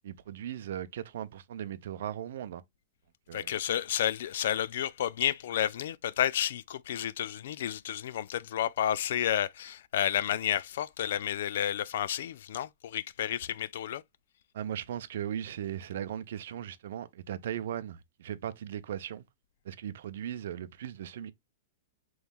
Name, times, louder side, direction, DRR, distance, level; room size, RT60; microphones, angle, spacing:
voice 1, 0.0-2.6 3.3-3.5 14.5-19.2 19.6-21.3, right 10 dB, 70° right, 0.5 m, -38 dB
voice 2, 3.3-14.0, left 10 dB, 70° left, 0.3 m, -31 dB
5.3 x 3.1 x 2.3 m
supercardioid pair, 160°, 0 cm